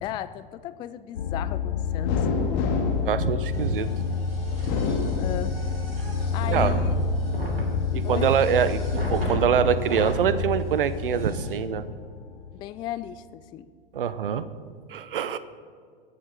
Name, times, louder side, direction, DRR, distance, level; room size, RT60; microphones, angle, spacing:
voice 1, 0.0-2.6 5.2-5.5 6.3-7.0 8.0-8.3 12.5-13.7, left 12 dB, 15° left, 13 dB, 0.3 m, -35 dB
sound 1, 1.2-13.1, left 5 dB, 70° left, 0.9 m, -29 dB
sound 2, 2.0-4.0 4.5-5.8 6.3-7.2, left 3 dB, 40° left, 2.2 m, -29 dB
voice 2, 3.0-4.2 6.5-6.7 7.9-11.8 13.9-14.4 14.9-15.4, right 8 dB, 65° right, 14 dB, 0.9 m, -24 dB
sound 3, 3.5-10.2 10.8-10.9 11.1-11.6, equal, 85° right, 3.0 m, -34 dB
23.5 x 8.3 x 4.4 m, 2.1 s
figure-of-eight pair, 90°, 29 cm